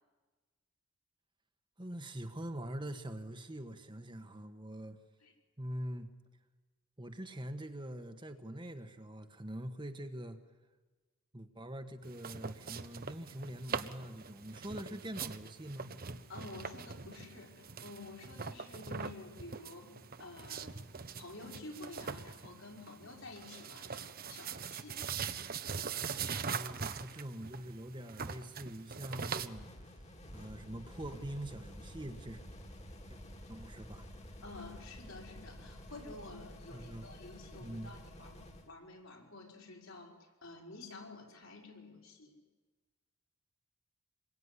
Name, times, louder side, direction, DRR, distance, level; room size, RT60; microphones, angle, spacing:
voice 1, 1.8-5.0 5.6-6.1 7.0-10.4 11.3-15.9 26.3-30.0 30.3-32.4 33.1-33.2 33.5-34.1 36.7-37.1 37.6-37.9, right 1 dB, 20° right, 6 dB, 1.5 m, -44 dB
sound 1, 12.0-29.5, right 6 dB, 45° right, 1.0 m, -42 dB
voice 2, 16.3-19.9 20.2-20.7 21.2-25.0 34.4-42.4, left 2 dB, 70° left, 1 dB, 5.3 m, -50 dB
sound 2, 29.3-38.7, equal, 30° left, 2.4 m, -51 dB
27.0 x 22.0 x 9.9 m, 1.3 s
head